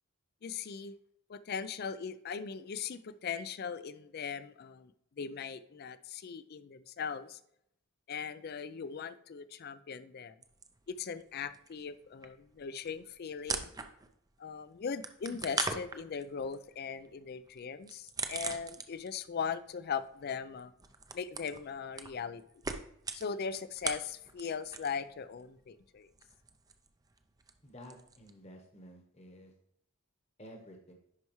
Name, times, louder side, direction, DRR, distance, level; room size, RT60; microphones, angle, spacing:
voice 1, 0.4-0.9 1.3-4.9 5.2-7.4 8.1-10.3 10.9-13.7 14.4-20.7 21.1-22.4 23.1-26.1, left 6 dB, 50° left, 0.4 m, -39 dB
sound 1, 10.4-11.3 11.5-14.3 14.6-19.3 19.5-25.1 25.3-28.3, right 4 dB, 20° right, 0.5 m, -41 dB
voice 2, 27.6-29.5 30.4-30.9, equal, 30° left, 1.1 m, -52 dB
10.5 x 4.6 x 3.1 m
head